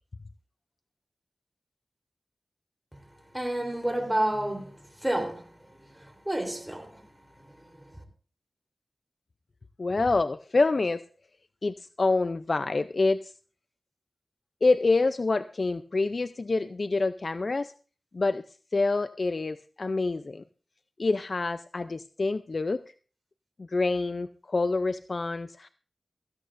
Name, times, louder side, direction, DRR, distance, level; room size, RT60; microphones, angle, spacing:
voice 1, 3.3-4.7 5.0-5.5 6.0-7.0 7.7-8.0, right 1 dB, 10° right, 3.7 m, -30 dB
voice 2, 9.8-11.0 11.6-13.3 14.6-17.7 18.1-18.4 18.7-20.4 21.0-22.8 23.6-25.7, left 3 dB, 60° left, 0.5 m, -27 dB
16.5 x 15.0 x 2.6 m
cardioid pair, 50°, 0 cm